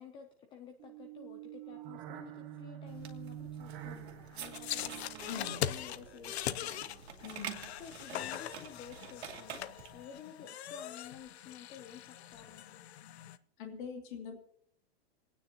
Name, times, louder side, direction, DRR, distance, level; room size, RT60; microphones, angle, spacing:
voice 1, 0.0-7.3 7.8-12.7, left 8 dB, 15° left, 4 dB, 0.5 m, -52 dB
sound 1, 0.8-7.2, right 11 dB, 30° right, 1.2 m, -48 dB
sound 2, 2.9-10.1, right 8 dB, 80° right, 2.2 m, -48 dB
sound 3, 4.5-13.4, left 12 dB, 85° left, 0.7 m, -41 dB
voice 2, 5.3-5.6 7.2-7.7 13.6-14.4, left 6 dB, 50° left, 2 dB, 2.3 m, -43 dB
28.0 x 9.5 x 2.8 m, 0.67 s
supercardioid pair, 160°, 32 cm